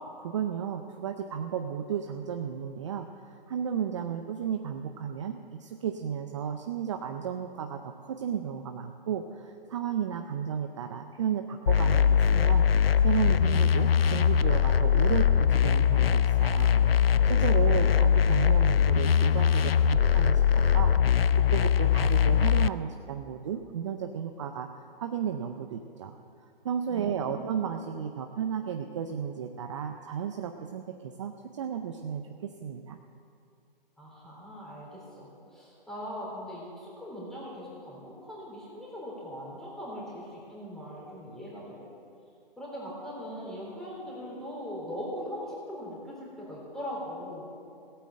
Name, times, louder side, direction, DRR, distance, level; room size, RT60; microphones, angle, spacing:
voice 1, 0.2-12.7 13.0-21.2 21.5-26.2 26.6-33.0, right 8 dB, 30° right, 6 dB, 0.6 m, -33 dB
sound 1, 11.7-22.7, left 8 dB, 80° left, 0.6 m, -22 dB
voice 2, 17.6-18.0 26.9-27.5 34.0-41.9 42.6-47.5, equal, ahead, -6 dB, 3.4 m, -40 dB
16.5 x 8.8 x 7.6 m, 2.5 s
hypercardioid pair, 145°, 29 cm